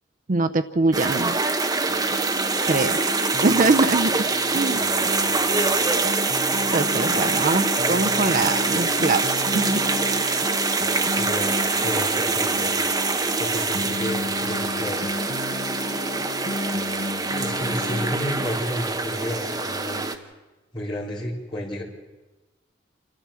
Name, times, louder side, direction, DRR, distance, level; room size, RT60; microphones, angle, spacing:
voice 1, 0.3-1.4 2.7-3.0 3.4-4.2 4.5-4.8 6.7-9.2 9.5-9.8, right 3 dB, 45° right, 10 dB, 0.6 m, -22 dB
sound 1, 0.9-20.2, right 3 dB, 20° right, 0.9 m, -24 dB
sound 2, 1.9-18.5, left 2 dB, 45° left, 1.0 m, -34 dB
voice 2, 11.2-11.6 11.8-12.8 13.4-15.2 17.3-20.0 20.7-21.8, left 1 dB, 25° left, -5 dB, 4.5 m, -31 dB
28.5 x 13.0 x 7.4 m, 1.2 s
head